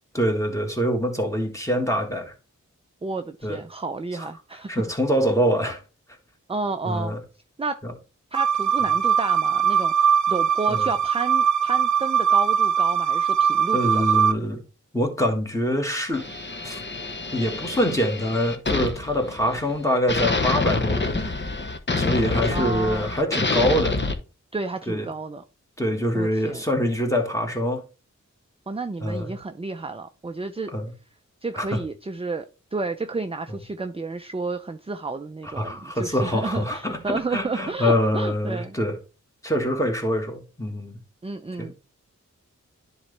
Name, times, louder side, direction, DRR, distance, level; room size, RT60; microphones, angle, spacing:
voice 1, 0.1-2.3 3.4-3.6 4.1-4.3 4.7-5.8 6.8-7.2 7.8-7.9 10.7-10.9 13.7-14.6 14.9-16.3 16.6-16.8 17.3-21.3 22.0-24.0 24.9-25.1 25.8-27.8 29.0-29.4 30.7-30.9 31.5-31.8 33.5-33.6 35.6-39.0 39.4-41.0 41.6-41.7, equal, 10° left, 1.8 m, -25 dB
voice 2, 3.0-4.8 6.5-7.1 7.6-7.8 8.3-14.3 22.5-23.2 24.5-25.4 26.1-26.6 28.7-30.7 31.4-32.5 32.7-38.8 41.2-41.7, right 3 dB, 20° right, 0.5 m, -31 dB
sound 1, 8.3-14.3, right 8 dB, 65° right, 0.5 m, -21 dB
sound 2, 16.1-19.8 20.1-24.1, left 3 dB, 35° left, 0.9 m, -27 dB
10.5 x 4.0 x 3.3 m
wide cardioid pair, 50°, 31 cm